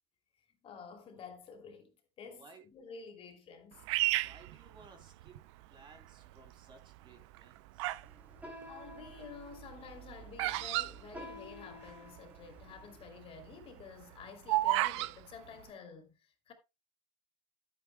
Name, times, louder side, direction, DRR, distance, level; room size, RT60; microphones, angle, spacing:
voice 1, 0.6-2.5 2.7-3.9 8.7-16.5, left 5 dB, 40° left, 2.8 m, -50 dB
voice 2, 2.3-2.6 4.1-5.4 5.7-8.0, right 4 dB, 35° right, 2.8 m, -58 dB
Bird vocalization bird call bird song, 3.9-5.4 6.0-6.5 7.2-8.1 8.4-11.9 12.2-12.3 12.4-12.8 13.2-15.1, right 18 dB, 80° right, 0.5 m, -33 dB
sound 1, 8.0-13.2, left 1 dB, 10° right, 3.1 m, -52 dB
12.5 x 9.4 x 2.2 m
supercardioid pair, 115°, 15 cm